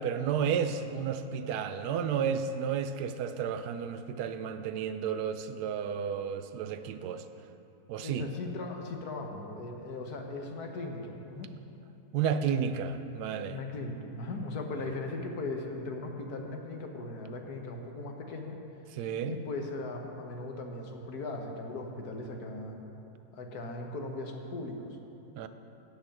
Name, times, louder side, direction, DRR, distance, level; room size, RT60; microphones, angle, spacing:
voice 1, 0.0-7.2 7.9-8.3 12.1-13.6 18.9-19.4 25.3-25.5, right 7 dB, 85° right, 10 dB, 1.2 m, -32 dB
voice 2, 8.0-11.5 13.5-18.6 19.2-22.8 23.3-25.0, left 2 dB, 70° left, 3 dB, 1.7 m, -38 dB
12.0 x 5.7 x 8.6 m, 2.7 s
omnidirectional pair, 1.7 m